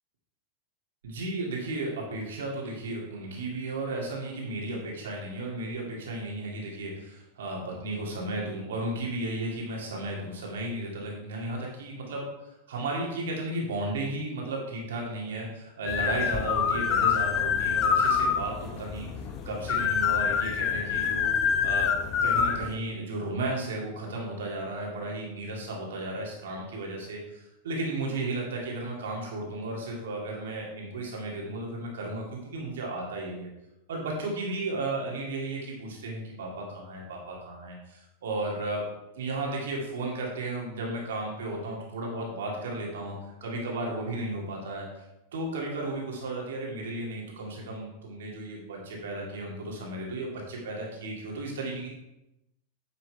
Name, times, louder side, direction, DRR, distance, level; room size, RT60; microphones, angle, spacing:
voice 1, 1.0-12.3 12.7-19.1 19.4-21.9 22.2-33.5 33.9-38.9 39.1-43.2 43.4-44.9 45.3-51.9, right 2 dB, 60° right, -1 dB, 2.4 m, -34 dB
sound 1, 15.9-22.8, left 7 dB, 30° left, 0.8 m, -26 dB
9.5 x 6.9 x 3.4 m, 0.93 s
figure-of-eight pair, 90°, 0 cm